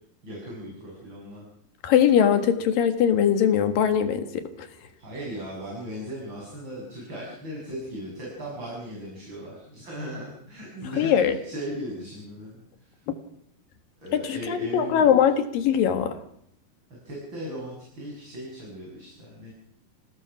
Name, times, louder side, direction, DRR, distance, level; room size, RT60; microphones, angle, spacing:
voice 1, 0.2-1.5 5.0-13.0 14.0-15.2 16.9-19.5, equal, 30° right, -3 dB, 7.2 m, -37 dB
voice 2, 1.8-4.5 11.0-11.3 14.1-16.2, left 8 dB, 75° left, 8 dB, 3.3 m, -21 dB
28.0 x 18.0 x 6.0 m, 0.72 s
omnidirectional pair, 4.0 m